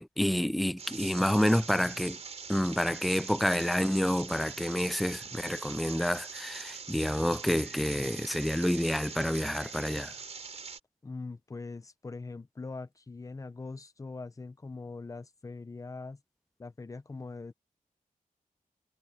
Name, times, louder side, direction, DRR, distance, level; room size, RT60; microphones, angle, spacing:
voice 1, 0.0-2.2 2.5-10.1, equal, ahead, 0.4 m, -28 dB
sound 1, 0.8-10.8, right 5 dB, 50° right, 4.0 m, -43 dB
voice 2, 11.0-16.2 16.6-17.5, left 3 dB, 25° left, 0.8 m, -42 dB
wide cardioid pair, 145°, 14 cm